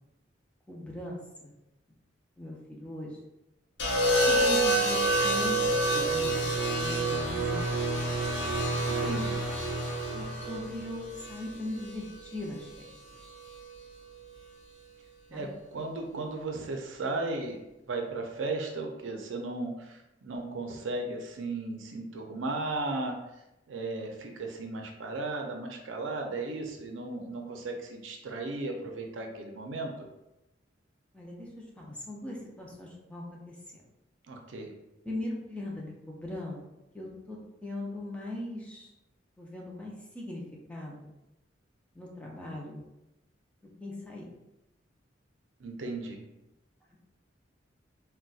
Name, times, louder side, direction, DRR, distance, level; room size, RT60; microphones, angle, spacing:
voice 1, 0.7-1.2 1.4-1.5 2.4-3.2 4.3-7.7 10.1-12.9 15.3-15.5 31.1-31.5 31.8-33.5 35.0-38.9 39.4-40.4 40.7-41.1 42.0-42.8 43.8-44.3, left 1 dB, 5° left, -3 dB, 0.5 m, -39 dB
sound 1, 3.8-12.0 13.2-13.6, right 1 dB, 65° left, 0.6 m, -29 dB
sound 2, 4.0-11.3, right 2 dB, 25° right, 0.9 m, -34 dB
voice 2, 8.8-9.4 15.3-17.6 17.9-23.2 23.7-30.1 34.3-34.7 45.6-46.3, right 2 dB, 80° right, 2 dB, 0.5 m, -35 dB
3.9 x 2.2 x 2.3 m, 0.92 s
head